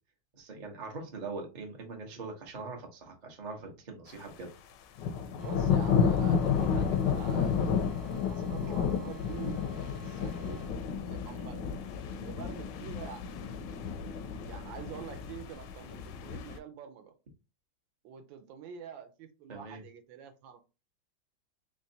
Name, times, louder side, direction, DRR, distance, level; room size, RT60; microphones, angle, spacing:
voice 1, 0.3-4.5 19.5-19.8, right 3 dB, 45° right, 0.6 m, -42 dB
sound 1, 5.0-16.6, left 6 dB, 75° left, 1.1 m, -31 dB
sound 2, 5.4-10.7, right 2 dB, 5° right, 0.7 m, -53 dB
voice 2, 5.4-9.7 10.0-10.6 11.0-11.7 12.0-13.5 14.5-17.2 18.0-20.6, right 8 dB, 75° right, 1.3 m, -46 dB
3.7 x 3.2 x 2.7 m
omnidirectional pair, 2.2 m